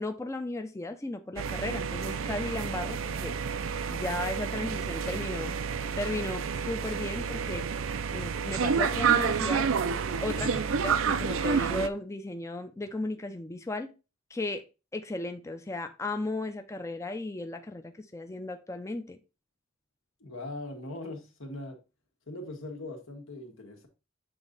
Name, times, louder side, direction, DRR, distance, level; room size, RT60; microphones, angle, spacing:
voice 1, 0.0-3.3 3.9-5.6 6.0-7.7 8.1-9.7 10.2-13.9 14.3-14.6 14.9-19.2, left 2 dB, 15° left, 0.4 m, -35 dB
sound 1, 1.4-11.9, right 6 dB, 90° right, 0.5 m, -29 dB
voice 2, 20.2-21.8 22.3-23.9, left 2 dB, 85° left, 1.4 m, -40 dB
7.0 x 4.0 x 3.9 m
head